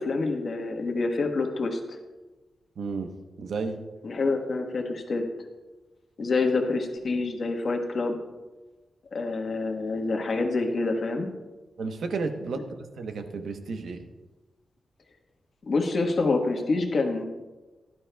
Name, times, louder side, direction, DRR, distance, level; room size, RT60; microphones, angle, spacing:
voice 1, 0.0-2.0 4.0-5.2 6.2-8.2 9.1-11.3 15.6-17.2, left 3 dB, 55° left, 3 dB, 1.3 m, -27 dB
voice 2, 2.8-3.8 11.8-14.0, right 4 dB, 80° right, 6 dB, 1.0 m, -33 dB
16.5 x 11.5 x 2.3 m, 1.2 s
wide cardioid pair, 145°, 0 cm